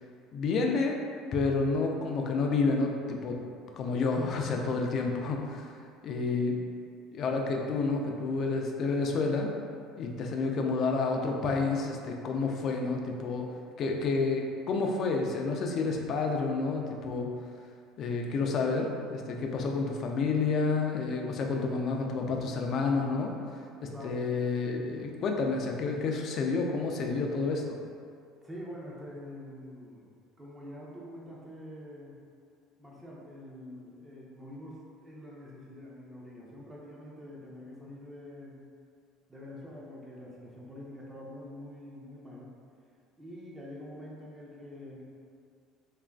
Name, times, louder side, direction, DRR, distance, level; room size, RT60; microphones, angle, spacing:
voice 1, 0.3-1.0 1.3-3.4 3.7-5.7 6.0-6.6 7.1-9.5 10.0-13.5 13.8-17.3 18.0-23.3 23.8-27.8, left 4 dB, 50° left, 1 dB, 0.3 m, -29 dB
voice 2, 23.9-24.4 28.4-30.1 30.4-32.2 32.8-38.6 39.3-42.5 43.2-45.0, left 1 dB, 15° right, -4 dB, 0.6 m, -46 dB
2.9 x 2.4 x 2.3 m, 2.3 s
supercardioid pair, 90°, 0 cm